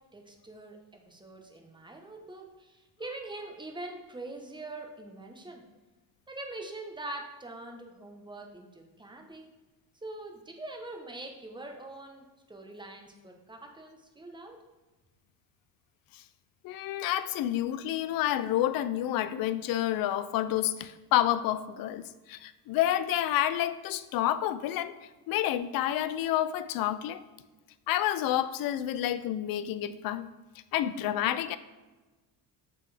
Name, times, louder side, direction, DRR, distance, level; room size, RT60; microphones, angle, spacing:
voice 1, 0.1-5.6 6.3-9.5 10.0-14.6, right 2 dB, 10° right, 2 dB, 0.8 m, -43 dB
voice 2, 16.6-22.0 22.3-25.0 25.3-27.2 27.9-30.3 30.7-31.6, left 12 dB, 60° left, 14 dB, 0.5 m, -29 dB
7.3 x 3.9 x 3.4 m, 1.2 s
cardioid pair, 125°, 40 cm